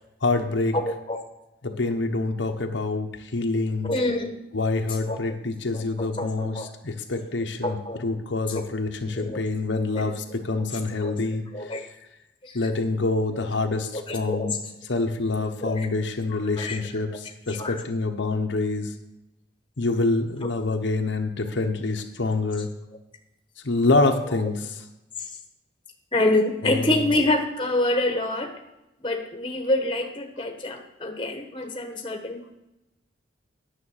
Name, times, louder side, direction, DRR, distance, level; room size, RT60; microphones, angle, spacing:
voice 1, 0.2-0.8 1.6-3.9 4.5-11.7 12.5-14.5 14.9-18.9 19.8-22.7 23.6-24.8 26.6-27.0, left 3 dB, 80° left, 4 dB, 1.0 m, -26 dB
voice 2, 0.7-1.2 3.8-4.3 5.1-5.3 5.7-6.7 7.6-8.2 8.5-8.6 9.1-9.4 9.9-10.1 10.6-10.7 11.0-11.2 11.5-11.8 12.4-12.6 13.9-14.5 15.6-15.9 16.6-16.8 17.5-17.8 26.1-28.5 29.0-32.5, left 2 dB, 25° left, 3 dB, 1.2 m, -27 dB
9.8 x 6.6 x 6.5 m, 0.94 s
head